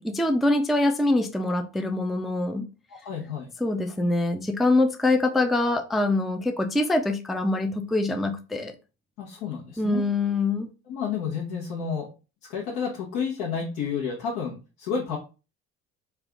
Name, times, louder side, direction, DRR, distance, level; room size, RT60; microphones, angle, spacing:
voice 1, 0.0-2.7 3.6-8.7 9.8-10.7, left 2 dB, ahead, 0.3 m, -24 dB
voice 2, 3.0-3.5 9.2-10.0 10.9-12.1 12.4-15.2, left 6 dB, 80° left, 1.0 m, -30 dB
3.4 x 2.3 x 3.6 m
supercardioid pair, 95°, 30 cm